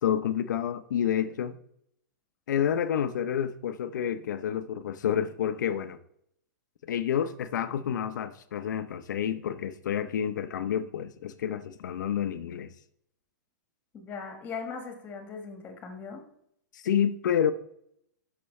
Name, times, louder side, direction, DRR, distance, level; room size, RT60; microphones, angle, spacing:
voice 1, 0.0-1.6 2.5-6.0 6.9-12.7 16.7-17.5, left 9 dB, 75° left, 0.8 m, -29 dB
voice 2, 13.9-16.2, left 5 dB, 20° left, 1.6 m, -39 dB
12.5 x 6.0 x 3.3 m
hypercardioid pair, 160°, 10 cm